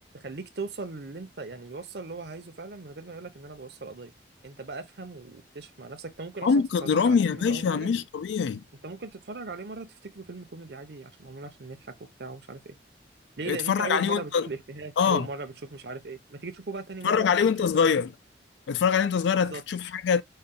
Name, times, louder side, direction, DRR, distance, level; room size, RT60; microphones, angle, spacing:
voice 1, 0.1-4.1 4.4-7.9 8.8-11.9 12.2-12.8 13.4-17.3 17.6-17.9 19.5-19.6, right 3 dB, 65° right, 0.8 m, -39 dB
voice 2, 6.4-8.6 13.5-14.5 15.0-15.3 17.0-18.1 18.7-20.2, left 6 dB, 80° left, 0.3 m, -24 dB
5.4 x 2.2 x 3.7 m
head